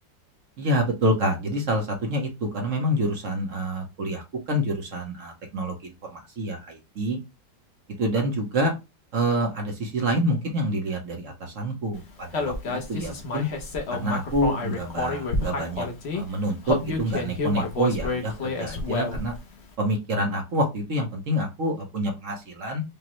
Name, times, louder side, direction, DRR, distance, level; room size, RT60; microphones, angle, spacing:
voice 1, 0.6-7.2 8.0-8.7 9.1-13.5 13.9-15.9 16.1-19.3 19.8-22.8, right 1 dB, 50° right, 1 dB, 1.1 m, -27 dB
Human voice, 12.3-16.2 16.6-19.4, left 3 dB, 55° left, 0.7 m, -29 dB
5.1 x 2.2 x 2.9 m, 0.24 s
omnidirectional pair, 2.2 m